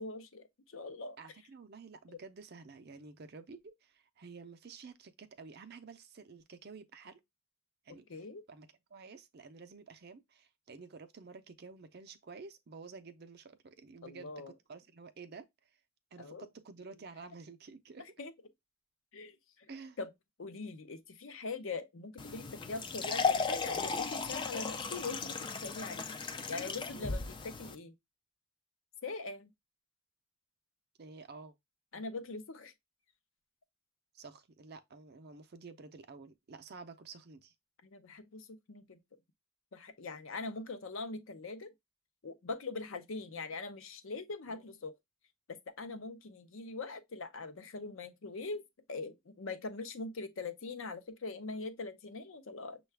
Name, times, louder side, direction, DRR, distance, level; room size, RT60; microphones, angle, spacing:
voice 1, 0.0-1.2 2.1-2.2 8.1-8.4 14.0-14.5 16.2-16.5 18.2-18.3 19.1-19.7 20.0-20.1 20.4-26.1 26.5-27.9 29.0-29.5 31.9-32.7 37.8-39.0 39.7-41.7 42.2-45.0 45.5-48.6 48.9-52.8, left 3 dB, 65° left, 0.6 m, -42 dB
voice 2, 1.2-7.2 7.8-15.8 16.1-18.1 19.7-20.0 26.9-27.2 31.0-31.5 31.9-32.0 34.1-37.5 44.5-44.8, right 4 dB, 45° right, 0.5 m, -51 dB
sound 1, 22.2-27.8, left 5 dB, 20° left, 0.3 m, -36 dB
6.4 x 2.3 x 3.3 m
head